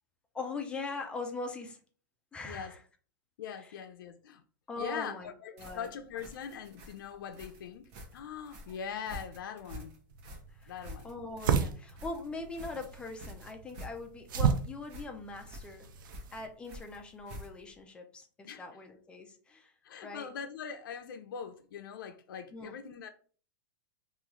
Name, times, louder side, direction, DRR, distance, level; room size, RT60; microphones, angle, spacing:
voice 1, 0.3-1.8 2.3-2.8 3.6-3.8 4.7-5.9 10.5-15.9 16.3-19.7 20.0-20.3 22.5-22.8, left 3 dB, 10° left, 0.4 m, -41 dB
voice 2, 3.4-4.4 4.8-9.9 10.7-11.1 18.4-18.6 19.8-23.1, left 7 dB, 80° left, 0.4 m, -42 dB
sound 1, 5.6-17.8, equal, 40° right, 0.8 m, -48 dB
sound 2, 10.1-16.5, right 6 dB, 75° right, 0.5 m, -34 dB
3.0 x 2.3 x 3.6 m
supercardioid pair, 160°, 11 cm